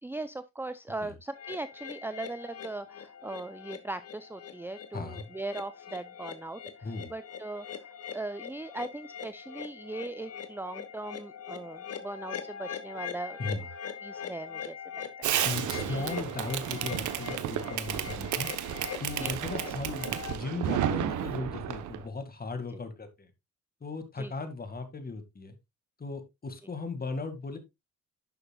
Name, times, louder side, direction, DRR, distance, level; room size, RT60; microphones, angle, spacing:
voice 1, 0.0-13.4 14.0-15.3 15.9-16.2 19.2-19.3 19.7-19.8 24.2-24.3, right 2 dB, 5° right, 0.5 m, -39 dB
sound 1, 1.3-20.3, left 7 dB, 55° left, 1.4 m, -42 dB
voice 2, 4.9-5.3 6.8-7.1 13.4-13.7 15.4-18.5 19.0-23.3 23.8-25.5 26.0-27.6, left 3 dB, 30° left, 2.1 m, -37 dB
Fireworks, 15.2-22.0, right 10 dB, 75° right, 1.1 m, -32 dB
11.0 x 6.8 x 2.4 m
cardioid pair, 90°, 30 cm